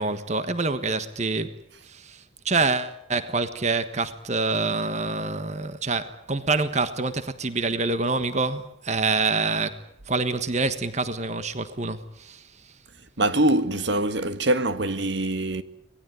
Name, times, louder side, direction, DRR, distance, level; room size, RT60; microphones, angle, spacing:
voice 1, 0.0-1.6 1.8-12.7, right 3 dB, 35° right, 1.4 m, -26 dB
voice 2, 13.2-15.6, right 1 dB, 65° right, 1.6 m, -23 dB
26.0 x 19.5 x 9.3 m
head